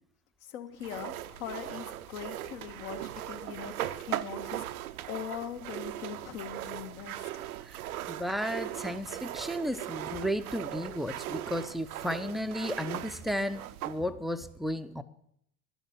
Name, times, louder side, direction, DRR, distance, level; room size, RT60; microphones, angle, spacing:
voice 1, 0.4-4.7 5.1-7.4, left 9 dB, 60° left, 8 dB, 1.5 m, -41 dB
sound 1, 0.8-14.0, right 13 dB, 70° right, 0.7 m, -39 dB
voice 2, 8.1-15.0, equal, ahead, 11 dB, 0.6 m, -33 dB
12.5 x 8.0 x 7.4 m, 0.71 s
figure-of-eight pair, 75°, 46 cm